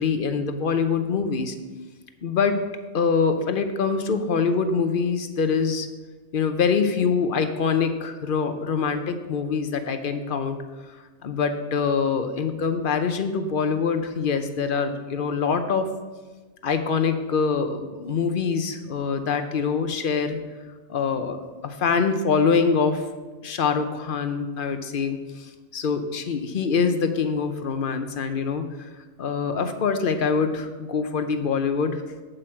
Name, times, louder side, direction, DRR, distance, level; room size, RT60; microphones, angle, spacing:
voice 1, 0.0-1.5 2.2-2.5 2.9-5.9 6.3-10.6 11.2-15.9 16.6-20.4 20.9-23.0 23.4-28.9 29.2-32.0, left 5 dB, 50° left, 8 dB, 0.8 m, -24 dB
7.9 x 7.7 x 4.5 m, 1.3 s
omnidirectional pair, 1.2 m